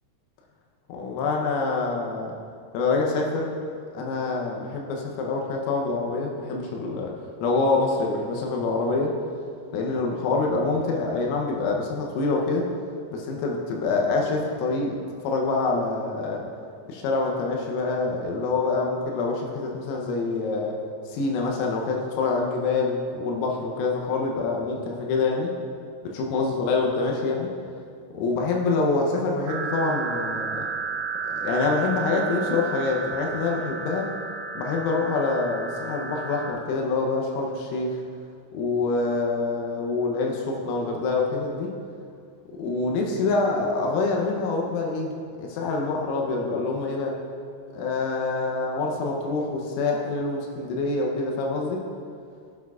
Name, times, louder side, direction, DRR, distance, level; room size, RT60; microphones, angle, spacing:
voice 1, 0.9-2.3 2.7-3.6 3.9-9.1 9.7-12.7 13.1-15.0 15.2-16.5 16.9-20.8 21.1-25.5 26.0-27.5 28.1-30.6 31.2-34.1 34.6-38.0 38.5-41.7 42.5-47.2 47.7-51.8, left 3 dB, 90° left, 0 dB, 3.6 m, -26 dB
sound 1, 29.5-36.5, right 5 dB, 80° right, 2.9 m, -32 dB
13.5 x 7.1 x 2.4 m, 2.3 s
omnidirectional pair, 6.0 m